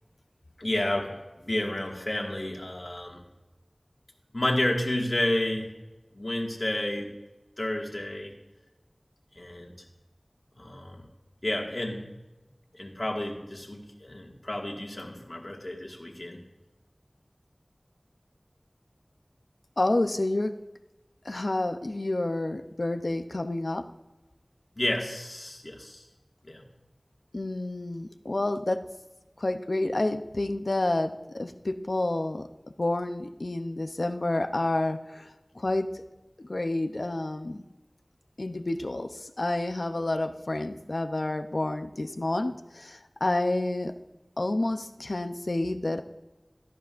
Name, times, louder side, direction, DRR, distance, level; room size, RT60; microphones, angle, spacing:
voice 1, 0.6-3.2 4.3-5.7 6.1-7.1 7.6-8.3 9.4-9.8 10.6-11.1 11.4-12.0 12.7-16.4 24.8-26.0 26.5-26.6, left 1 dB, 55° left, 0 dB, 1.9 m, -31 dB
voice 2, 19.8-20.5 21.2-23.9 27.3-28.8 29.4-32.5 32.8-36.0 36.4-37.6 38.4-43.9 44.4-46.0, left 2 dB, 75° left, 8 dB, 0.6 m, -29 dB
17.0 x 13.0 x 2.5 m, 1.1 s
wide cardioid pair, 45°, 0 cm